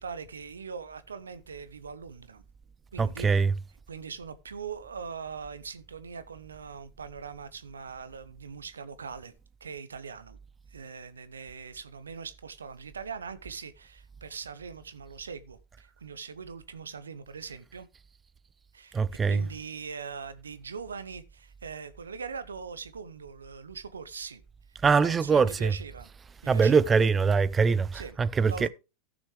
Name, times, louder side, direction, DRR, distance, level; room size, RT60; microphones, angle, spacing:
voice 1, 0.0-2.4 2.9-3.4 3.9-9.3 9.6-10.4 10.7-17.9 18.7-24.4 24.8-26.1 26.4-26.8 27.9-28.2 28.5-28.7, right 5 dB, 85° right, 0.8 m, -41 dB
voice 2, 3.0-3.5 18.9-19.4 24.8-25.7 26.5-28.7, right 5 dB, 20° right, 0.4 m, -23 dB
14.5 x 6.2 x 3.2 m
hypercardioid pair, 95°, 0 cm